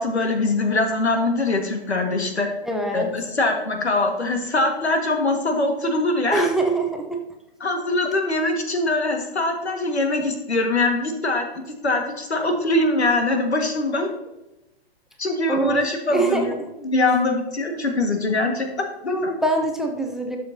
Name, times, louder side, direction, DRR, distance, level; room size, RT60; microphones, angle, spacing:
voice 1, 0.0-2.5 2.9-6.5 7.6-14.1 15.2-16.6 16.8-18.7 19.0-19.4, left 2 dB, 85° left, 4 dB, 1.8 m, -22 dB
voice 2, 2.7-3.1 6.3-7.2 15.5-15.8 16.1-16.4 17.8-17.9 19.1-20.4, right 2 dB, ahead, 2 dB, 0.7 m, -24 dB
12.0 x 6.5 x 2.8 m, 0.97 s
figure-of-eight pair, 120°, 32 cm